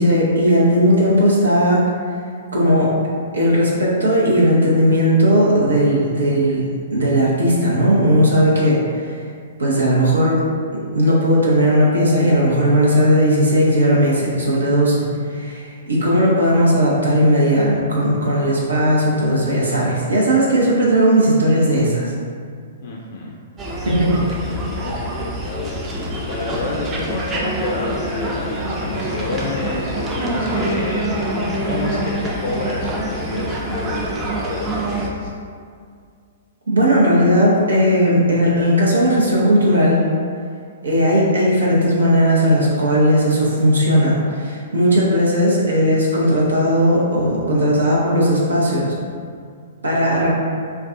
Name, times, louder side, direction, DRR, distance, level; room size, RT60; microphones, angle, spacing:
voice 1, 0.0-1.8 2.5-2.9 3.3-9.2 9.6-10.4 10.9-22.1 23.8-24.4 36.7-40.0 40.8-48.9 49.8-50.3, equal, 85° right, -5 dB, 0.7 m, -16 dB
voice 2, 22.8-23.3 24.3-31.2 31.6-35.3, left 3 dB, 55° left, -3 dB, 0.3 m, -29 dB
sound 1, 23.6-35.1, right 1 dB, 20° right, 0.4 m, -25 dB
2.4 x 2.3 x 3.5 m, 2.2 s
hypercardioid pair, 120°, 0 cm